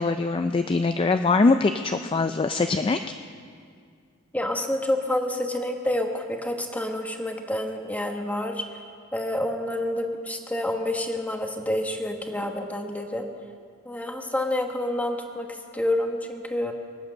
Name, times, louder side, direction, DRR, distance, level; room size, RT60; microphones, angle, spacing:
voice 1, 0.0-3.0, left 3 dB, 25° left, 9 dB, 0.3 m, -22 dB
voice 2, 4.3-8.8 9.1-13.3 13.8-16.7, left 1 dB, 5° left, 4 dB, 1.2 m, -28 dB
24.0 x 8.6 x 6.7 m, 2.2 s
head